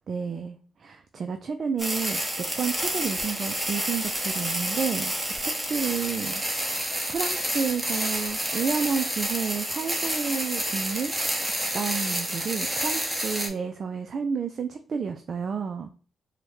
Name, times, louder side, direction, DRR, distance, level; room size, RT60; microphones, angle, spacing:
voice 1, 0.1-5.1 5.4-6.8 7.1-11.1 11.4-15.9, right 6 dB, 60° right, 7 dB, 0.3 m, -31 dB
sound 1, 1.8-13.5, right 1 dB, 10° right, 1.1 m, -29 dB
4.5 x 2.1 x 3.1 m, 0.41 s
supercardioid pair, 60°, 0 cm